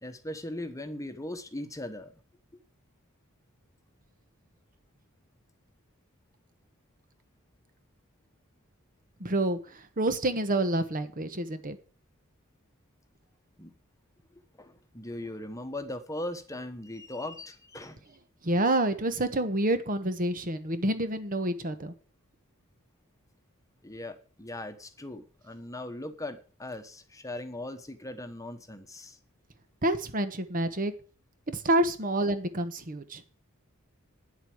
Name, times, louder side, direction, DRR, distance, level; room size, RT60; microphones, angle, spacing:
voice 1, 0.0-2.2 13.6-13.7 14.3-18.1 23.8-29.2, left 1 dB, 15° left, 8 dB, 1.2 m, -39 dB
voice 2, 9.2-11.8 18.4-21.9 29.8-30.9 31.5-33.2, right 1 dB, 40° right, 10 dB, 1.2 m, -28 dB
9.7 x 8.0 x 7.9 m, 0.39 s
head